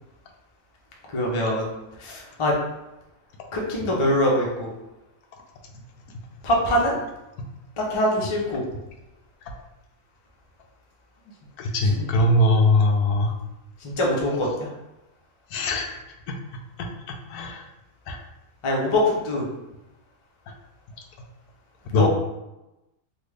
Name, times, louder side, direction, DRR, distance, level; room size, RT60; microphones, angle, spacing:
voice 1, 1.1-1.7 2.0-2.5 3.5-4.7 6.4-7.0 7.8-8.6 11.9-12.1 13.8-14.7 18.6-19.4 22.0-22.1, left 1 dB, 40° left, -3 dB, 0.4 m, -23 dB
voice 2, 11.6-13.3 15.5-16.0 17.1-17.6 18.1-18.2 21.9-22.1, left 1 dB, 90° left, 2 dB, 1.1 m, -21 dB
3.4 x 2.3 x 3.3 m, 0.97 s
omnidirectional pair, 1.5 m